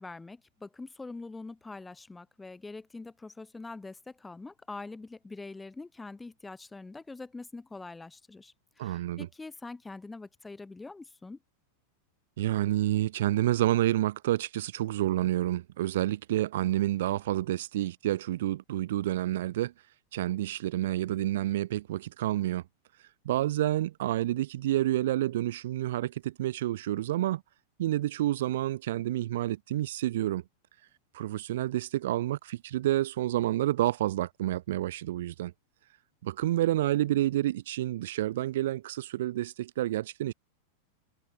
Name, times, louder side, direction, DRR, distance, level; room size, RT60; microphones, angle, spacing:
voice 1, 0.0-11.4, left 3 dB, 10° left, 5.8 m, -44 dB
voice 2, 8.8-9.3 12.4-19.7 20.1-22.6 23.2-27.4 27.8-30.4 31.1-35.5 36.2-40.3, right 14 dB, 55° right, 1.5 m, -29 dB
figure-of-eight pair, 90°, 0 cm